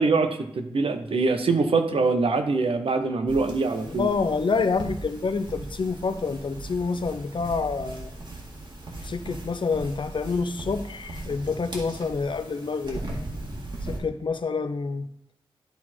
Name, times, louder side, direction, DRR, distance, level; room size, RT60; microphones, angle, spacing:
voice 1, 0.0-4.1, right 3 dB, 90° right, 7 dB, 0.9 m, -24 dB
sound 1, 3.3-14.0, right 2 dB, 55° right, 1.9 m, -38 dB
voice 2, 3.9-8.1 9.0-13.0 13.9-15.1, left 4 dB, 60° left, 10 dB, 0.6 m, -27 dB
11.5 x 4.3 x 4.4 m, 0.75 s
wide cardioid pair, 95°, 9 cm